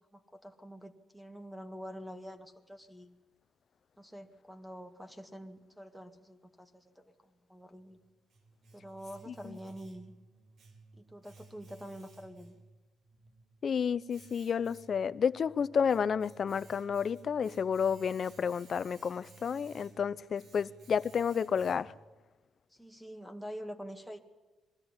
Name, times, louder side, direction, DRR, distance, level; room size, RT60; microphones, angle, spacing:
voice 1, 0.1-3.1 4.0-7.0 7.5-8.0 8.7-10.1 10.9-12.5 20.6-20.7 22.7-24.2, equal, 5° right, 2.0 m, -46 dB
Domestic sounds home sounds, 7.8-22.1, right 3 dB, 65° right, 3.7 m, -57 dB
voice 2, 9.3-9.6 13.6-21.9, left 7 dB, 50° left, 0.6 m, -31 dB
22.0 x 13.5 x 9.9 m
cardioid pair, 90°, 0 cm